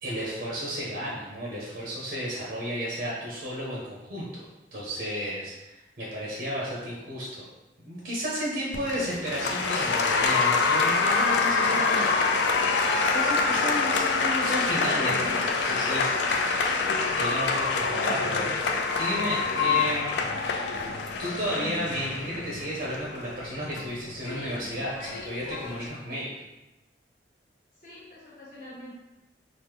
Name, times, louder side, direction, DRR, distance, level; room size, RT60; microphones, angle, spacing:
voice 1, 0.0-4.4 4.7-7.4 7.8-12.1 13.1-18.5 19.0-20.2 21.2-26.3, equal, 65° right, -5 dB, 0.6 m, -33 dB
Applause, 8.7-25.9, left 4 dB, 80° left, 0.3 m, -26 dB
voice 2, 27.8-28.9, left 1 dB, 50° left, -8 dB, 0.7 m, -46 dB
3.0 x 2.0 x 3.3 m, 1.0 s
head